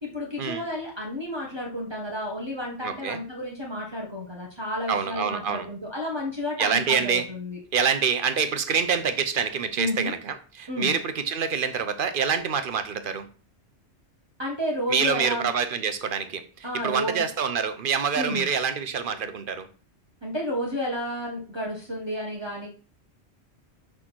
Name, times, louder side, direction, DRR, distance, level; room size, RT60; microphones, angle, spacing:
voice 1, 0.0-7.6 9.8-10.1 10.7-10.9 14.4-15.5 16.6-17.2 18.1-18.4 20.2-22.7, left 1 dB, 25° right, -3 dB, 1.4 m, -31 dB
voice 2, 2.8-3.2 4.9-5.7 6.6-7.3 7.7-13.3 14.9-19.7, right 6 dB, 55° right, 10 dB, 0.9 m, -26 dB
6.2 x 3.7 x 6.1 m, 0.38 s
omnidirectional pair, 1.1 m